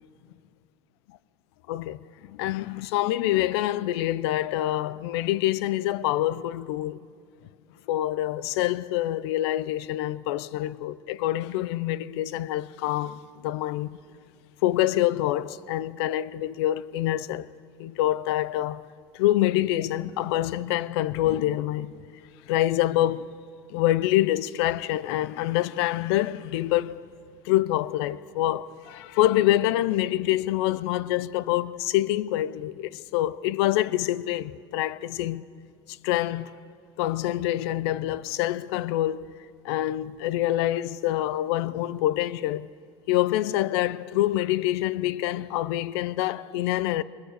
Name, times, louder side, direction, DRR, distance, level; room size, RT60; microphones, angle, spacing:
voice 1, 1.7-7.0 7.9-14.0 14.6-17.5 17.8-18.8 19.1-21.9 22.5-23.3 23.7-27.0 27.4-35.4 36.0-36.5 37.0-39.3 39.6-42.7 43.1-47.0, left 14 dB, 80° left, 0.7 m, -26 dB
25.5 x 21.0 x 6.7 m
supercardioid pair, 100°, 13 cm